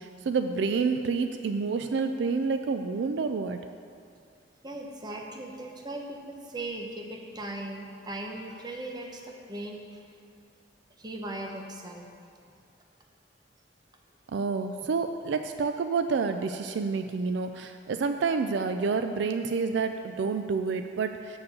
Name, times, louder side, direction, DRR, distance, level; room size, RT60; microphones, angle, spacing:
voice 1, 0.0-3.6 14.3-21.4, right 4 dB, 70° right, 8 dB, 0.4 m, -28 dB
voice 2, 4.6-10.0 11.0-12.1 12.5-12.6, right 1 dB, 25° right, 1 dB, 0.9 m, -38 dB
6.8 x 6.8 x 6.9 m, 2.4 s
head